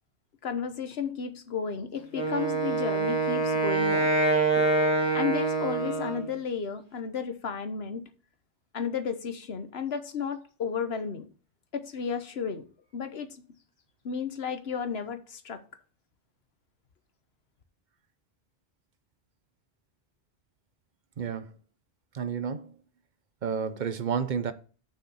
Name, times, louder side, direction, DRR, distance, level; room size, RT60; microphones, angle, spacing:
voice 1, 0.4-4.1 4.5-4.7 5.1-8.0 8.7-11.3 11.7-12.6 12.9-13.4 14.0-15.6, left 6 dB, 75° left, 1.2 m, -33 dB
Wind instrument woodwind instrument, 2.1-6.4, right 3 dB, 25° left, 1.4 m, -26 dB
voice 2, 21.2-21.5 22.1-22.7 23.4-24.5, right 6 dB, 50° right, 0.8 m, -30 dB
6.9 x 6.4 x 5.5 m
omnidirectional pair, 1.1 m